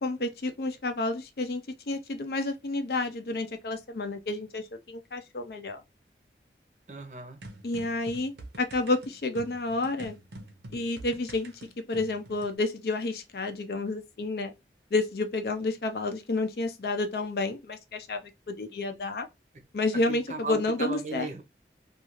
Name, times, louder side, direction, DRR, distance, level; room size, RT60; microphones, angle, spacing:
voice 1, 0.0-5.8 7.6-8.3 8.6-10.2 10.7-14.5 14.9-19.3 19.7-21.3, left 2 dB, 60° left, 0.5 m, -30 dB
voice 2, 6.9-7.4 20.1-21.4, right 3 dB, 45° right, 0.6 m, -36 dB
sound 1, 7.4-12.6, right 1 dB, 80° right, 0.7 m, -46 dB
2.4 x 2.4 x 2.9 m
head